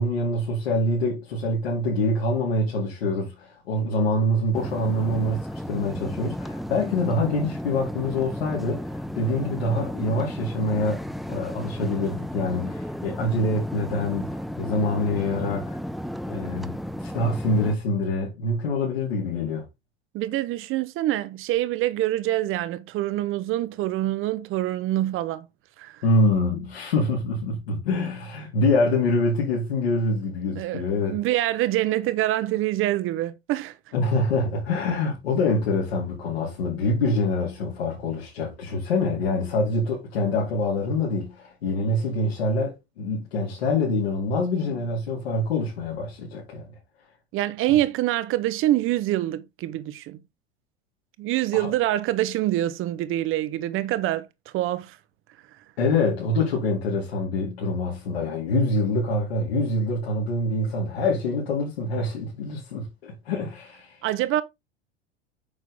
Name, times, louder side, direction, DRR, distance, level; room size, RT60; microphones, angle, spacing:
voice 1, 0.0-11.0 11.3-15.8 16.3-19.6 26.0-31.2 33.9-46.7 51.5-51.7 55.8-64.0, left 2 dB, 70° left, 3.8 m, -25 dB
sound 1, 4.5-17.8, equal, ahead, 0.7 m, -34 dB
voice 2, 20.1-25.5 25.8-26.0 30.5-33.8 47.3-50.2 51.2-54.3 54.5-55.0 64.0-64.4, right 14 dB, 40° right, 1.2 m, -25 dB
9.1 x 6.4 x 3.7 m
figure-of-eight pair, 85°, 32 cm